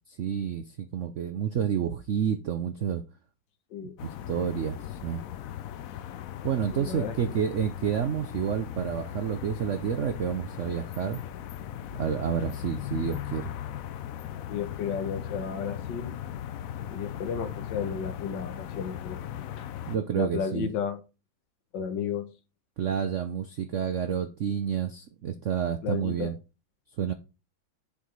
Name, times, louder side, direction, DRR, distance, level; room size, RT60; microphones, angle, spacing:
voice 1, 0.1-3.0 4.0-5.2 6.4-11.2 12.0-13.5 19.9-20.7 22.8-26.3 27.0-27.1, right 8 dB, 75° right, 0.6 m, -29 dB
sound 1, 4.0-20.0, left 11 dB, 85° left, 0.7 m, -38 dB
voice 2, 6.7-7.2 14.5-16.2 16.9-19.2 19.6-19.7 20.1-21.0 21.7-22.3 25.8-26.3, left 7 dB, 70° left, 1.6 m, -33 dB
7.2 x 4.7 x 5.2 m
omnidirectional pair, 2.1 m